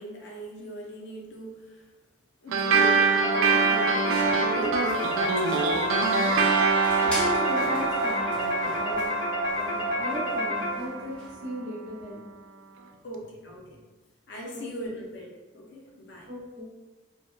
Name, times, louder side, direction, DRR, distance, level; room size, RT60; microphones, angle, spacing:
voice 1, 0.0-1.9 2.4-6.4 13.0-13.8 14.3-16.3, right 1 dB, 60° left, -2 dB, 0.5 m, -40 dB
sound 1, 2.5-11.3, right 5 dB, 85° right, 0.3 m, -26 dB
sound 2, 3.2-11.1, left 1 dB, 90° left, 0.9 m, -29 dB
sound 3, 4.1-11.4, equal, 5° left, 0.5 m, -42 dB
voice 2, 7.1-9.1 9.5-12.2 14.5-14.6 16.3-16.7, equal, 60° right, -6 dB, 0.7 m, -36 dB
2.7 x 2.1 x 2.2 m, 1.2 s
head